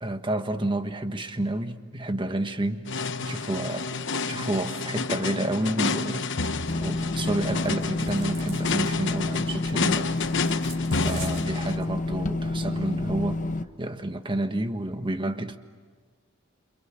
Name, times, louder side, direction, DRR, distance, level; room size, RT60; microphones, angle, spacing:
voice 1, 0.0-2.9 3.2-3.9 4.3-10.1 11.0-13.4 13.8-15.6, right 1 dB, 25° right, 7 dB, 1.5 m, -30 dB
sound 1, 2.9-11.8, left 4 dB, 60° left, 1.1 m, -30 dB
sound 2, 6.6-6.9 7.1-7.2 7.4-11.8, right 6 dB, 40° right, 4.3 m, -46 dB
sound 3, 6.7-13.6, left 2 dB, 35° left, 1.0 m, -29 dB
28.5 x 27.5 x 7.4 m, 1.5 s
head